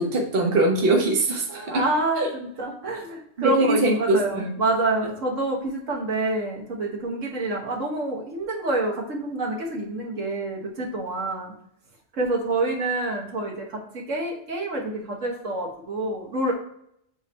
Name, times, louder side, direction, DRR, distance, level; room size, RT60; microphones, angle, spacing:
voice 1, 0.0-1.7 2.2-2.3 3.4-4.5, right 2 dB, 50° right, 0 dB, 1.4 m, -22 dB
voice 2, 1.5-11.5 12.1-16.5, right 2 dB, 80° right, 0 dB, 1.8 m, -27 dB
8.1 x 3.6 x 4.3 m, 0.71 s
omnidirectional pair, 1.3 m